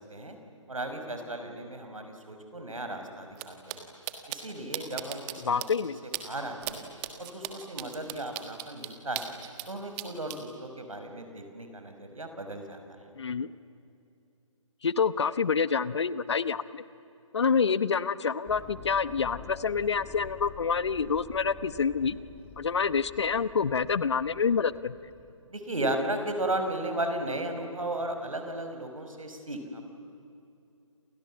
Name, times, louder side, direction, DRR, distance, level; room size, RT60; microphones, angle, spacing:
voice 1, 0.7-3.8 4.3-5.7 6.0-6.8 7.2-9.3 9.7-12.8 25.5-29.8, right 1 dB, 85° right, 6 dB, 5.3 m, -35 dB
sound 1, 3.3-3.4 3.7-3.8 4.1-4.4 4.7-5.3 5.6-5.7 6.1-6.2 6.6-6.7 7.0-9.7 10.0-10.4, right 18 dB, 20° right, 1.5 m, -36 dB
voice 2, 5.4-6.0 13.2-13.5 14.8-16.8 17.3-22.2 22.6-24.9, left 6 dB, 55° left, 16 dB, 1.0 m, -27 dB
sound 2, 18.5-25.3, left 4 dB, 10° left, 2.3 m, -48 dB
29.0 x 27.5 x 7.4 m, 2.7 s
figure-of-eight pair, 150°, 17 cm